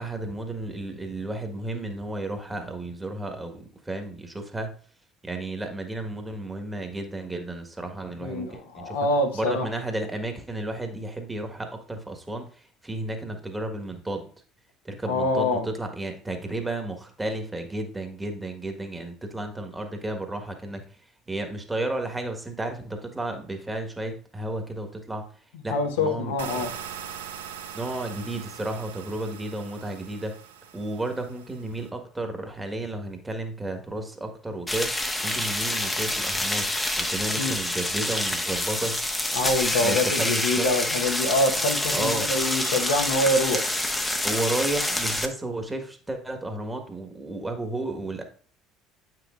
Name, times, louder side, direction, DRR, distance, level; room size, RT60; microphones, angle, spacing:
voice 1, 0.0-4.7 5.2-9.0 9.3-14.3 14.8-25.3 25.6-26.6 27.7-30.4 30.7-36.7 37.0-39.0 39.8-40.7 41.9-42.3 44.2-48.2, right 2 dB, 15° right, 5 dB, 1.5 m, -33 dB
voice 2, 8.2-9.7 15.1-15.7 25.7-26.7 37.4-37.6 39.3-43.8, left 2 dB, 75° left, 3 dB, 1.2 m, -25 dB
sound 1, 26.4-31.9, right 8 dB, 80° right, 0.7 m, -41 dB
sound 2, 34.7-45.3, left 1 dB, 10° left, 1.0 m, -27 dB
8.8 x 6.1 x 2.5 m, 0.43 s
figure-of-eight pair, 60°, 0 cm